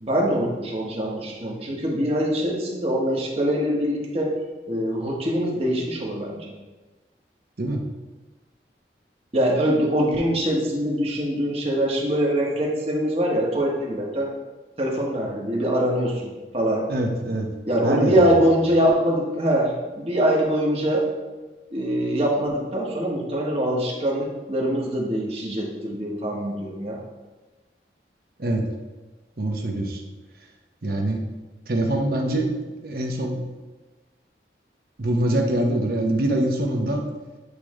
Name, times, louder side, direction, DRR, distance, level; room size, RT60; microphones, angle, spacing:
voice 1, 0.0-4.3 4.7-6.5 9.3-14.3 14.8-16.8 17.7-21.1 21.7-27.0, equal, 35° right, -2 dB, 1.1 m, -23 dB
voice 2, 16.9-17.5 17.8-18.3 28.4-28.6 29.4-30.0 30.8-31.2 31.7-33.4 35.0-37.0, right 1 dB, 55° right, 2 dB, 0.8 m, -24 dB
8.1 x 3.2 x 3.6 m, 1.2 s
head